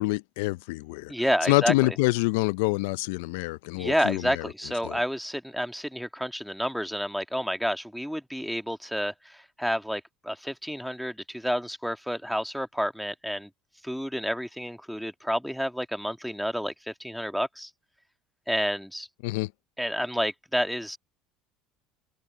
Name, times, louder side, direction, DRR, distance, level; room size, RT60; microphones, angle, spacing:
voice 1, 0.0-1.1 1.5-4.5 4.8-5.0 19.2-19.5, left 22 dB, 85° left, 0.4 m, -26 dB
voice 2, 1.1-2.0 3.8-13.5 13.8-17.7 18.5-19.1 19.8-21.0, equal, ahead, 1.6 m, -30 dB
open air
supercardioid pair, 130°, 0 cm